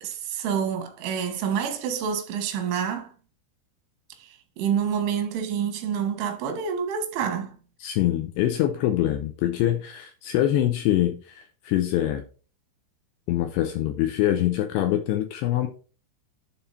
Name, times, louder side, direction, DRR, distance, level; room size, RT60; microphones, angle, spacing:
voice 1, 0.0-3.1 4.6-7.5, right 7 dB, 90° right, 3.7 m, -27 dB
voice 2, 7.8-12.2 13.3-15.7, left 12 dB, 80° left, 2.5 m, -24 dB
11.5 x 3.8 x 4.0 m
omnidirectional pair, 5.5 m